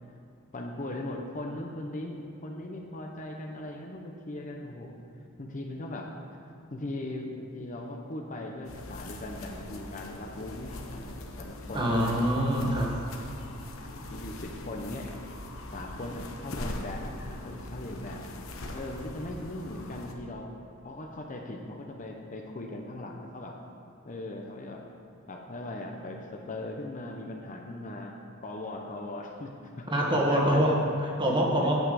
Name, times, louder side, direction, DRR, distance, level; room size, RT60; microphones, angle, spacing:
voice 1, 0.5-4.9 5.4-6.1 6.7-12.1 12.6-12.7 14.1-15.1 15.7-18.2 18.7-20.5 20.8-23.5 24.0-24.8 25.3-28.1 28.4-30.7 31.6-31.8, left 1 dB, 40° left, 1 dB, 0.8 m, -39 dB
sound 1, 8.6-20.1, left 1 dB, 80° left, 1.0 m, -41 dB
voice 2, 11.7-12.9 29.9-31.8, equal, 25° right, -2 dB, 1.6 m, -25 dB
9.2 x 5.7 x 8.2 m, 2.7 s
head